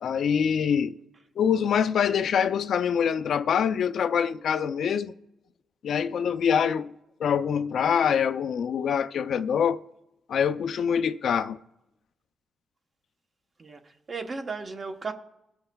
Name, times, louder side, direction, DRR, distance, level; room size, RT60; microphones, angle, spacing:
voice 1, 0.0-1.0 1.4-5.1 5.8-6.9 7.2-9.8 10.3-11.6, left 7 dB, 65° left, 0.4 m, -25 dB
voice 2, 13.6-15.1, right 4 dB, 35° right, 0.9 m, -35 dB
22.5 x 7.8 x 2.2 m
cardioid pair, 115°, 0 cm